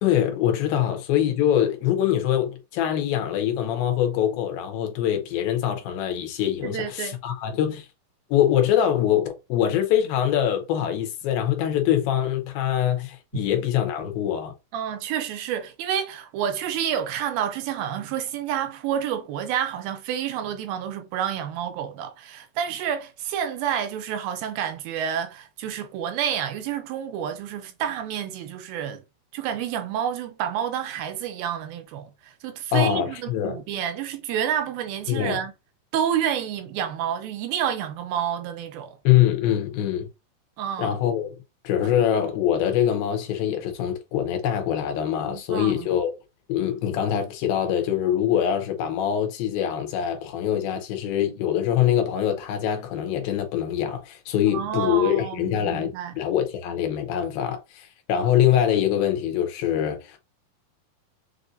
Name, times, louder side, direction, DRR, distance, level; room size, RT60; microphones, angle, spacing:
voice 1, 0.0-7.9 8.3-14.5 32.7-33.6 35.1-35.4 39.0-40.1 40.8-41.3 41.6-46.1 46.5-60.2, left 10 dB, 80° left, 2.6 m, -24 dB
voice 2, 6.6-7.2 14.7-29.0 29.3-35.5 35.9-39.0 40.6-40.9 45.3-45.9 54.5-56.1, right 9 dB, 80° right, 2.4 m, -29 dB
6.8 x 2.6 x 2.6 m
omnidirectional pair, 4.3 m